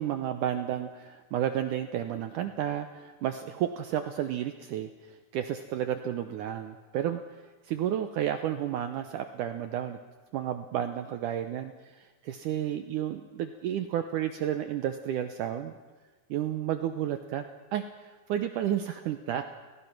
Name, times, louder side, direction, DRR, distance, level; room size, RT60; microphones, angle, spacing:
voice 1, 0.0-4.9 5.3-7.2 7.6-10.0 10.3-15.7 16.3-17.4 17.7-19.4, right 10 dB, 75° right, 8 dB, 1.9 m, -31 dB
25.5 x 18.0 x 6.1 m, 1.3 s
omnidirectional pair, 4.4 m